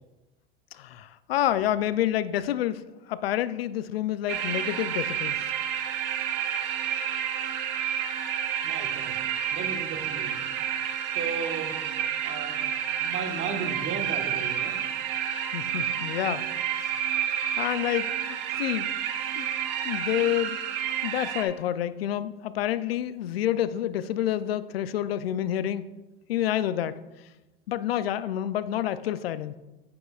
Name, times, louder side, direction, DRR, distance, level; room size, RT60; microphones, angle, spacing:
voice 1, 0.7-5.4 15.5-16.4 16.8-17.2 17.6-18.1 18.5-18.9 19.4-19.5 19.8-20.6 21.0-25.8 26.3-27.0 27.7-29.6, left 12 dB, 85° left, 15 dB, 0.5 m, -28 dB
sound 1, 4.3-21.4, right 9 dB, 65° right, 1.0 m, -30 dB
voice 2, 8.6-9.2 9.5-10.3 11.1-11.7 12.2-12.6 13.0-14.8, right 5 dB, 45° right, 5 dB, 1.5 m, -35 dB
9.6 x 8.4 x 2.4 m, 1.1 s
hypercardioid pair, 80°, 29 cm